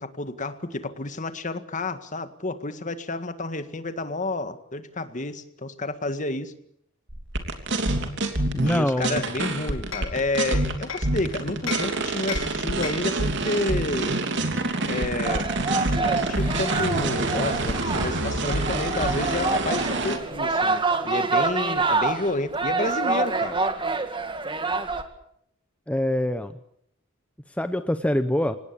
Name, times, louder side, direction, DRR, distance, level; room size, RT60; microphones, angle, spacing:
voice 1, 0.0-6.5 8.6-14.1 14.9-15.5 16.0-23.6, left 2 dB, 40° left, 10 dB, 1.9 m, -30 dB
sound 1, 7.1-20.2, right 2 dB, 60° right, 3.2 m, -27 dB
voice 2, 8.5-9.2 25.9-26.5 27.6-28.6, left 1 dB, 5° left, 9 dB, 0.9 m, -24 dB
Hammer, 8.7-11.2 11.7-13.2, left 6 dB, 70° left, 4.0 m, -36 dB
sound 2, 15.2-25.0, right 3 dB, 25° right, 2.1 m, -27 dB
25.5 x 19.0 x 8.7 m, 0.72 s
head